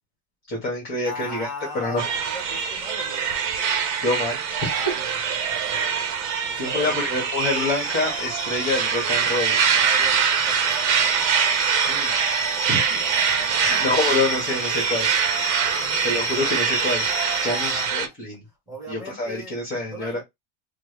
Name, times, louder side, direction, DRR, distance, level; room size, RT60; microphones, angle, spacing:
voice 1, 0.5-1.5 1.7-2.1 4.0-4.9 5.7-6.0 6.6-9.6 11.9-12.1 12.7-12.8 13.6-15.1 16.0-17.0 17.4-18.4 18.9-20.2, left 2 dB, 25° left, 1.6 m, -26 dB
voice 2, 1.0-3.3 4.7-5.7 6.5-7.1 9.7-11.0 13.4-13.7 15.6-16.1 17.4-17.9 18.7-20.2, equal, 10° right, 1.5 m, -39 dB
sound 1, 2.0-18.1, right 7 dB, 45° right, 0.8 m, -24 dB
sound 2, 7.4-17.9, left 2 dB, 10° left, 0.3 m, -33 dB
3.3 x 2.2 x 3.3 m
cardioid pair, 150°, 38 cm